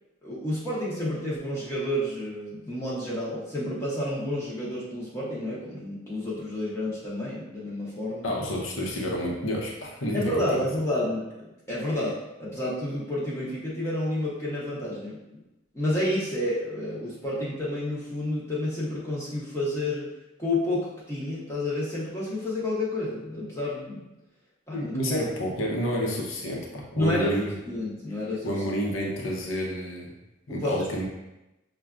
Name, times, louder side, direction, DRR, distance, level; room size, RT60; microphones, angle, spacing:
voice 1, 0.2-8.2 10.1-12.1 12.4-15.4 15.7-20.1 20.4-24.0 24.7-25.2 27.0-28.5 30.5-31.1, left 1 dB, 15° left, -7 dB, 0.7 m, -30 dB
voice 2, 8.2-10.4 24.7-27.6 28.4-30.1 30.5-31.1, equal, 90° left, -2 dB, 0.7 m, -29 dB
6.0 x 2.2 x 2.4 m, 0.95 s
head